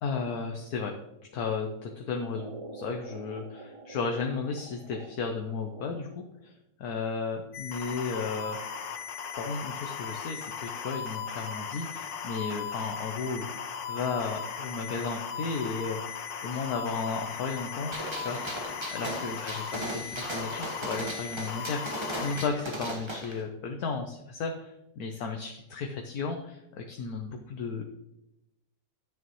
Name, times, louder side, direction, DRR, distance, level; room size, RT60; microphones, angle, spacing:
voice 1, 0.0-0.9 1.3-6.5 6.8-8.6 9.4-13.5 13.9-18.4 18.9-27.8, left 4 dB, 60° left, 3 dB, 1.2 m, -34 dB
sound 1, 2.3-6.4, right 2 dB, 55° right, 0.3 m, -46 dB
sound 2, 7.5-22.5, left 7 dB, 85° left, 1.6 m, -37 dB
Gunshot gunfire, 17.9-23.4, right 1 dB, 15° right, 1.1 m, -37 dB
10.5 x 9.1 x 3.1 m, 0.90 s
omnidirectional pair, 2.0 m